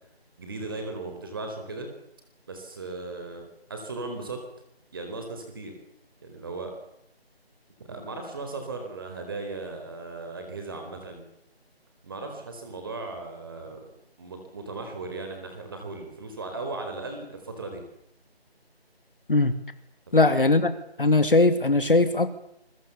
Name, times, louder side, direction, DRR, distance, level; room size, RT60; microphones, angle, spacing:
voice 1, 0.4-1.9 2.5-4.4 4.9-5.7 6.2-6.8 7.8-11.3 12.0-13.9 14.2-17.8 20.1-20.3, right 3 dB, 20° right, 4 dB, 4.2 m, -37 dB
voice 2, 20.1-20.7 21.0-22.3, left 2 dB, 55° left, 10 dB, 2.8 m, -20 dB
29.5 x 23.0 x 7.1 m, 0.78 s
figure-of-eight pair, 170°, 32 cm